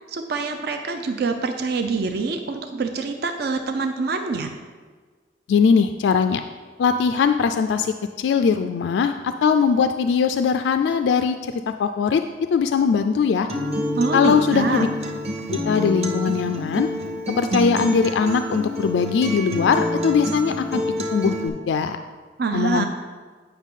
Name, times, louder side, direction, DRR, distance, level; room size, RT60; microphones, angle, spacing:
voice 1, 0.1-4.5 13.9-14.8 22.4-22.8, right 4 dB, 60° right, 6 dB, 0.5 m, -25 dB
voice 2, 5.5-6.4 6.8-12.2 12.5-13.5 14.1-14.9 15.5-16.9 17.3-20.8 21.1-22.0 22.5-22.8, left 6 dB, 80° left, 8 dB, 0.3 m, -20 dB
Acoustic guitar, 13.5-21.5, left 1 dB, 35° right, 0.9 m, -27 dB
9.0 x 5.8 x 3.6 m, 1.4 s
head